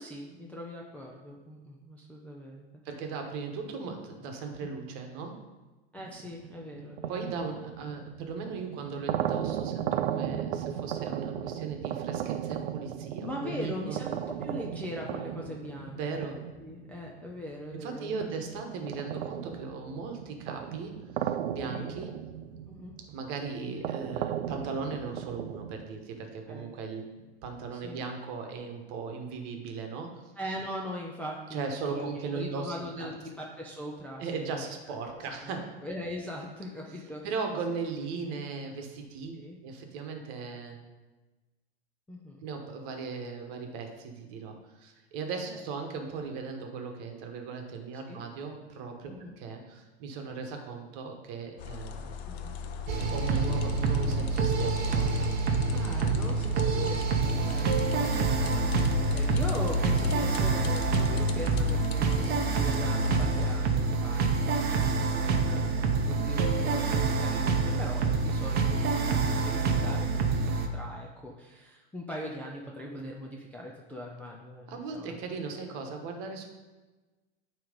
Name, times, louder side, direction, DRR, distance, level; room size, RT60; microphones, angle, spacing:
voice 1, 0.0-2.7 4.6-4.7 5.9-7.3 13.2-14.1 14.4-16.3 16.6-18.3 18.8-18.9 21.7-21.9 22.7-22.9 26.5-26.7 27.7-28.0 30.4-35.0 35.4-37.3 39.3-39.6 42.1-42.4 45.5-45.6 48.1-48.2 49.1-49.3 52.3-52.5 55.7-58.0 58.5-75.2, left 1 dB, 5° left, -3 dB, 0.4 m, -41 dB
voice 2, 2.8-5.4 7.1-14.0 15.9-16.4 17.7-22.1 23.1-27.1 27.4-30.3 31.5-33.1 34.2-35.7 37.2-39.3 39.6-40.8 42.4-52.2 53.1-55.1 58.0-58.5 74.7-76.5, right 4 dB, 45° right, 4 dB, 1.2 m, -38 dB
sound 1, 6.0-17.7 18.2-25.9, right 10 dB, 75° right, 0.5 m, -36 dB
sound 2, 51.6-63.6, left 8 dB, 70° left, 0.7 m, -35 dB
sound 3, 52.9-70.7, right 4 dB, 30° right, 0.7 m, -27 dB
9.1 x 3.1 x 5.0 m, 1.2 s
hypercardioid pair, 125°, 33 cm